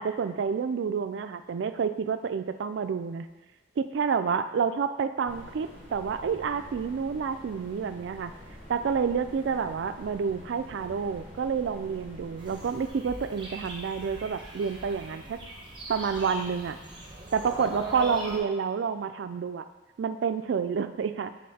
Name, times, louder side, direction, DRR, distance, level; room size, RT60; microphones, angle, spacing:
voice 1, 0.0-3.3 3.8-8.3 8.7-15.4 15.9-16.8 17.3-19.6 20.0-21.3, right 6 dB, 65° right, 10 dB, 0.3 m, -29 dB
sound 1, 5.2-12.9, equal, 5° right, 1.9 m, -47 dB
sound 2, 12.4-18.4, right 1 dB, 25° right, 0.9 m, -41 dB
7.5 x 3.6 x 4.1 m, 1.2 s
head